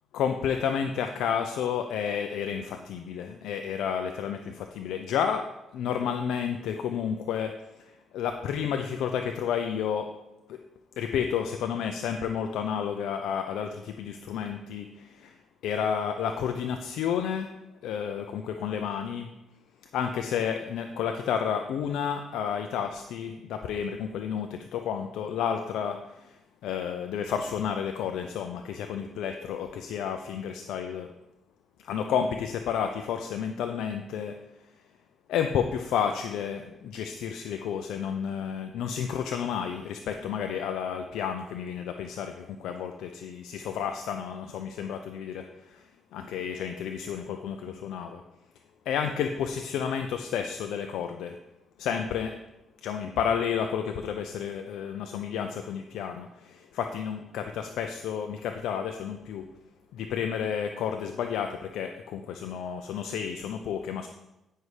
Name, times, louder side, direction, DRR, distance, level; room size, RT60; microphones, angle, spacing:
voice 1, 0.1-5.5 5.7-7.5 8.1-10.1 10.5-10.6 11.0-15.3 15.6-17.5 17.8-19.3 19.9-26.3 26.6-31.1 31.8-34.3 35.3-45.8 46.1-48.2 48.9-51.4 51.8-52.4 52.8-59.5 59.9-64.1, left 8 dB, 85° left, 6 dB, 0.5 m, -31 dB
9.5 x 5.5 x 4.8 m, 0.95 s
cardioid pair, 90°, 0 cm